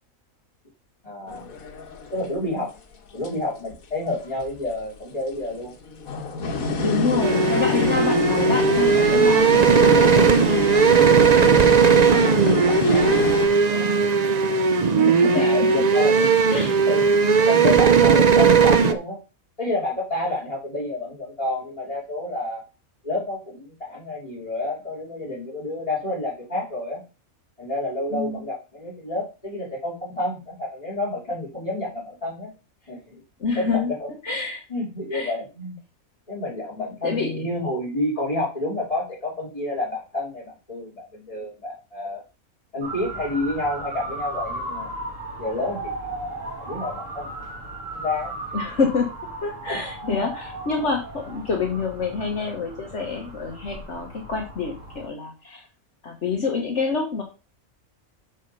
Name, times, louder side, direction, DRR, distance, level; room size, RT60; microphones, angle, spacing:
voice 1, 1.0-1.5 2.1-2.7 3.1-5.7 12.0-14.2 14.9-16.4 16.8-19.2 19.6-22.6 23.0-27.0 27.6-32.5 32.9-33.2 33.5-34.1 34.7-35.8 36.3-42.2 42.7-44.9 45.4-46.0 46.6-47.3 47.9-48.3 49.7-49.8 50.0-50.2, left 2 dB, 25° left, -7 dB, 3.1 m, -29 dB
sound 1, 1.3-2.6 3.2-3.8 4.4-5.0 5.6-13.5, left 4 dB, 85° left, 1.6 m, -27 dB
voice 2, 6.7-10.5 15.3-15.6 16.5-16.7 28.1-28.4 33.4-33.9 34.2-34.6 35.1-35.3 37.0-37.4 48.5-49.1 49.4-55.7 56.0-57.2, left 4 dB, 60° left, 1 dB, 1.6 m, -27 dB
sound 2, 7.2-18.9, right 6 dB, 40° right, 0.6 m, -17 dB
Motor vehicle (road) / Siren, 42.8-55.1, right 1 dB, 65° right, 2.4 m, -36 dB
6.6 x 6.4 x 5.5 m, 0.31 s
omnidirectional pair, 1.4 m